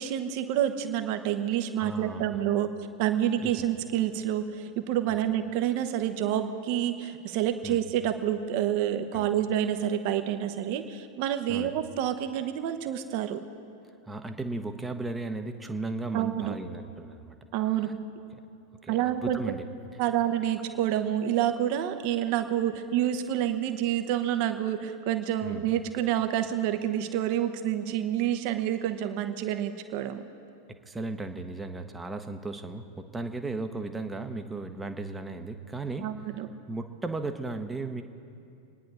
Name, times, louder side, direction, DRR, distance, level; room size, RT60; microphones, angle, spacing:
voice 1, 0.0-2.7 3.0-13.4 16.1-16.6 17.5-17.9 18.9-19.4 20.0-30.2 36.0-36.5, right 11 dB, 45° right, 8 dB, 1.1 m, -28 dB
voice 2, 1.8-2.4 3.4-3.7 5.1-5.2 7.6-7.8 9.1-9.3 11.5-11.8 14.1-17.4 17.8-17.9 18.3-18.4 18.8-19.6 25.4-25.7 30.9-36.1 36.7-38.0, right 2 dB, 10° right, 7 dB, 1.0 m, -36 dB
27.0 x 10.0 x 4.8 m, 2.6 s
figure-of-eight pair, 90°, 0 cm